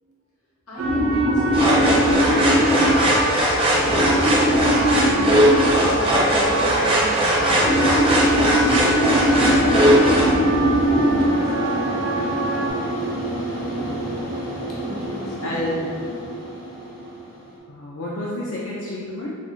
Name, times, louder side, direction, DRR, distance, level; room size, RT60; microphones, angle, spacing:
voice 1, 0.7-2.4 3.8-7.6 9.2-10.6 10.9-11.7 14.8-15.6, equal, 85° left, -6 dB, 0.8 m, -35 dB
sound 1, 0.8-12.7, equal, 85° right, 0.6 m, -21 dB
sound 2, 1.5-10.3, equal, 25° right, 0.4 m, -19 dB
sound 3, 8.9-17.6, right 1 dB, 40° left, 0.7 m, -28 dB
voice 2, 13.7-14.3 15.4-16.0 17.7-19.4, left 1 dB, 65° left, -6 dB, 0.4 m, -30 dB
2.6 x 2.1 x 3.6 m, 2.1 s
head